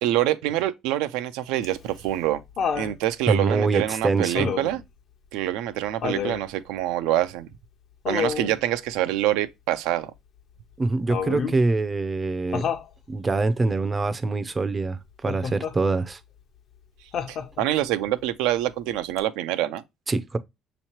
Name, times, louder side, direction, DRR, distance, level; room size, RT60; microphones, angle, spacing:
voice 1, 0.0-2.4 2.7-4.8 5.3-7.5 8.1-10.1 17.3-19.8, right 13 dB, 90° right, 0.4 m, -25 dB
Laughter, 1.6-3.0 4.3-4.8 6.0-6.5 8.0-8.6 11.1-11.6 12.5-12.9 15.3-15.8 17.1-17.8 19.2-19.3, left 7 dB, 50° left, 0.7 m, -29 dB
voice 2, 3.3-4.5 10.8-12.6 13.1-16.2 20.1-20.4, right 3 dB, 20° right, 0.4 m, -24 dB
6.3 x 3.0 x 2.9 m
cardioid pair, 115°, 0 cm